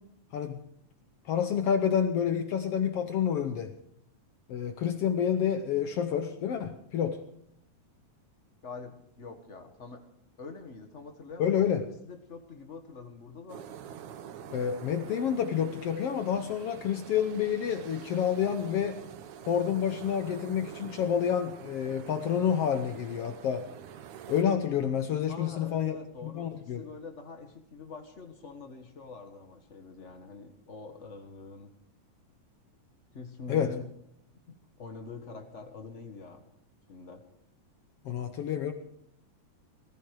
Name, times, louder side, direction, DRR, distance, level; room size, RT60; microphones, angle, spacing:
voice 1, 0.3-0.6 1.2-3.7 4.5-7.2 11.4-11.8 14.5-19.0 19.4-23.7 24.3-26.8 33.5-33.7 38.0-38.7, left 8 dB, 65° left, 8 dB, 1.5 m, -29 dB
voice 2, 8.6-10.0 10.4-13.6 25.3-31.7 33.1-33.9 34.5-36.4 36.9-37.2, left 4 dB, 35° left, 5 dB, 1.3 m, -45 dB
sound 1, 13.5-24.4, right 9 dB, 75° right, 2.5 m, -46 dB
19.0 x 15.0 x 4.8 m, 0.70 s
omnidirectional pair, 3.6 m